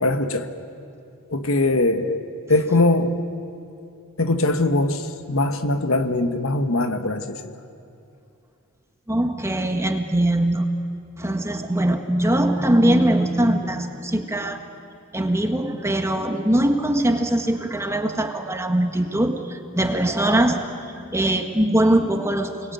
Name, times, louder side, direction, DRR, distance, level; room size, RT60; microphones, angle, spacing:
voice 1, 0.0-0.5 1.3-2.2 2.5-3.2 4.2-7.5, left 2 dB, 65° left, 8 dB, 1.5 m, -21 dB
voice 2, 9.1-10.7 11.2-14.6 15.1-22.7, right 1 dB, 15° right, 5 dB, 1.5 m, -21 dB
29.5 x 21.0 x 9.3 m, 2.6 s
head